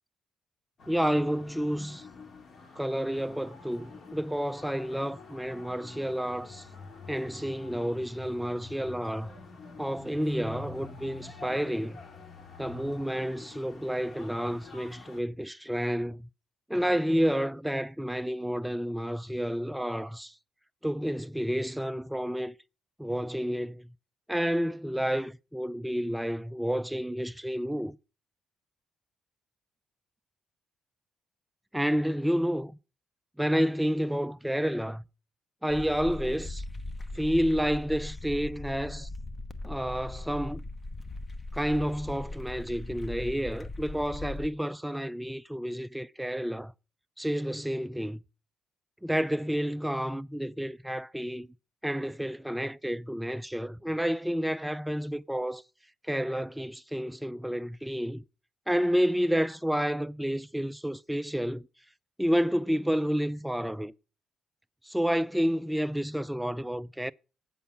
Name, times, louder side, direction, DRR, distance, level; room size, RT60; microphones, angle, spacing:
sound 1, 0.8-15.2, left 4 dB, 55° left, 2.2 m, -48 dB
voice 1, 0.9-2.1 2.8-6.7 7.1-9.3 9.8-12.0 12.6-16.3 16.7-20.3 20.8-22.5 23.0-23.9 24.3-28.0 31.7-32.8 33.4-35.0 35.6-36.6 37.1-39.1 39.6-40.6 41.5-46.7 47.2-48.2 49.0-51.5 51.8-55.6 56.0-58.2 58.7-61.7 62.2-63.9 64.8-67.1, equal, 5° right, 0.4 m, -30 dB
sound 2, 35.7-44.5, left 2 dB, 25° left, 0.9 m, -39 dB
8.3 x 7.1 x 5.8 m
cardioid pair, 90°, 0 cm